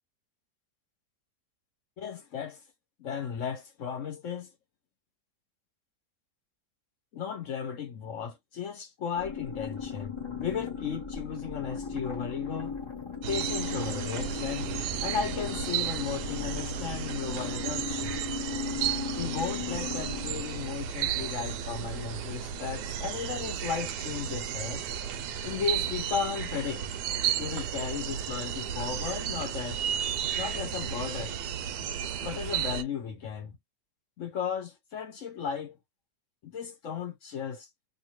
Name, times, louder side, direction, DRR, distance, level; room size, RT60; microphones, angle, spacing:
voice 1, 2.0-2.6 3.0-4.5 7.1-12.8 13.3-14.7 15.0-18.2 19.2-24.8 25.4-26.8 27.4-29.8 30.3-31.4 32.2-33.5 34.2-35.8 36.4-37.7, left 7 dB, 55° left, 1.0 m, -35 dB
sound 1, 9.2-20.9, left 5 dB, 35° left, 0.5 m, -37 dB
sound 2, 13.2-32.8, right 9 dB, 80° right, 1.1 m, -33 dB
2.8 x 2.6 x 2.9 m
omnidirectional pair, 1.7 m